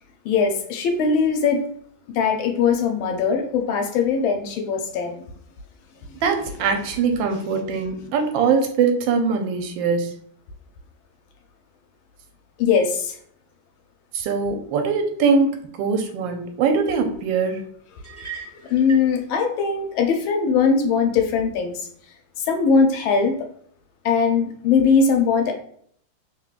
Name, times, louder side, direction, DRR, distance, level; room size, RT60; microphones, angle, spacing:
voice 1, 0.2-1.6 2.1-5.3 6.1-6.2 12.6-13.2 18.1-18.2 18.6-21.9 22.5-23.4 24.0-25.5, left 5 dB, 80° left, 4 dB, 1.4 m, -20 dB
voice 2, 6.2-10.1 14.1-17.6, right 5 dB, 75° right, 4 dB, 1.3 m, -22 dB
sound 1, 18.0-19.1, right 7 dB, 25° right, 1.4 m, -37 dB
3.7 x 3.2 x 2.4 m, 0.62 s
omnidirectional pair, 2.2 m